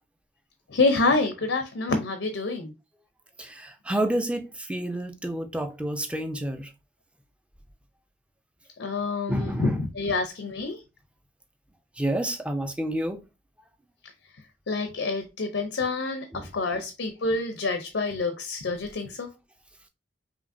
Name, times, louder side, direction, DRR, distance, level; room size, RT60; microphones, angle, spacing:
voice 1, 0.7-2.7 8.8-10.8 14.7-19.3, left 3 dB, 85° left, 0.6 m, -27 dB
voice 2, 3.4-6.7 9.3-9.8 12.0-13.2 16.3-16.5 16.7-16.8, right 1 dB, 5° right, 0.4 m, -29 dB
5.1 x 2.8 x 2.6 m
head